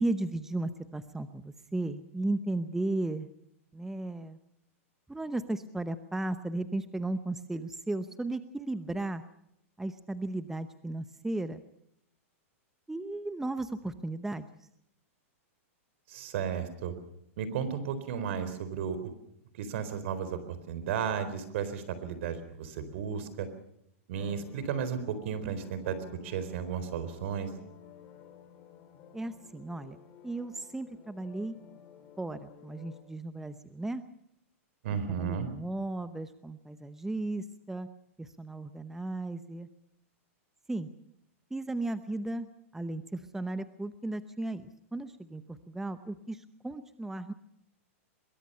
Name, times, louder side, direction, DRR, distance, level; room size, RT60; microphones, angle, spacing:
voice 1, 0.0-3.3 3.7-4.4 5.1-9.2 9.8-11.6 12.9-14.5 29.1-30.0 30.2-31.6 32.2-34.0 35.1-37.9 38.2-39.7 40.7-40.9 41.5-42.5 42.7-47.3, right 2 dB, 5° right, 11 dB, 0.9 m, -35 dB
voice 2, 16.1-16.9 17.4-19.1 19.6-20.4 20.7-23.5 24.1-26.0 26.2-27.5 34.8-35.5, right 7 dB, 60° right, 12 dB, 4.1 m, -34 dB
sound 1, 24.1-33.0, left 8 dB, 35° left, 5.1 m, -53 dB
23.5 x 22.0 x 5.6 m, 0.75 s
hypercardioid pair, 140°, 7 cm